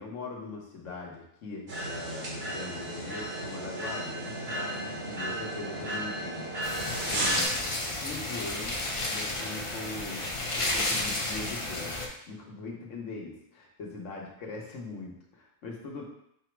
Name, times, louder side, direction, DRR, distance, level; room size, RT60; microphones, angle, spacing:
voice 1, 0.0-6.5 7.1-7.6 8.0-16.0, left 3 dB, 80° left, -1 dB, 1.3 m, -41 dB
sound 1, 1.7-7.5, right 1 dB, 65° right, 1.3 m, -34 dB
sound 2, 6.6-12.1, left 2 dB, 40° left, 0.4 m, -32 dB
5.7 x 2.0 x 4.4 m, 0.74 s
omnidirectional pair, 1.3 m